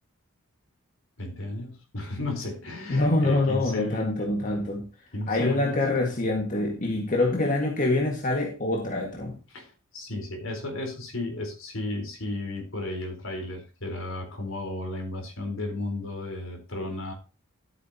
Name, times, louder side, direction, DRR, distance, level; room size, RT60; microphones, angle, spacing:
voice 1, 1.2-4.3 5.1-5.8 9.5-17.1, left 2 dB, 65° left, 4.3 m, -34 dB
voice 2, 2.9-4.9 5.3-9.4, left 2 dB, 40° left, 1.9 m, -25 dB
13.5 x 8.5 x 2.9 m
head